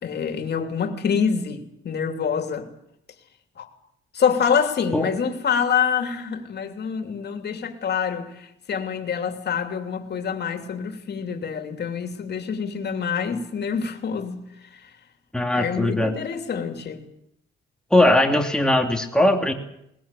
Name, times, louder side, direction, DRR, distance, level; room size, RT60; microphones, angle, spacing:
voice 1, 0.0-2.7 3.6-3.7 4.1-14.4 15.6-17.0, left 7 dB, 50° left, 3.2 m, -26 dB
voice 2, 15.3-16.1 17.9-19.5, left 1 dB, 5° left, 2.9 m, -19 dB
21.0 x 20.5 x 8.5 m
cardioid pair, 125°, 21 cm